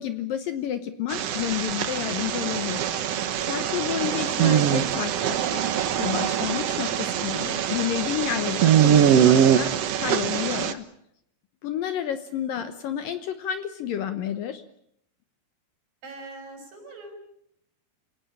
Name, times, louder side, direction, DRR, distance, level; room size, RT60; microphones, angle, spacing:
voice 1, 0.0-2.8 3.4-10.9 11.6-14.6, left 10 dB, 70° left, 9 dB, 2.4 m, -30 dB
sound 1, 1.1-10.7, right 9 dB, 85° right, 1.4 m, -23 dB
voice 2, 16.0-17.1, right 2 dB, 55° right, 4 dB, 7.6 m, -42 dB
28.5 x 17.5 x 8.7 m, 0.75 s
omnidirectional pair, 4.8 m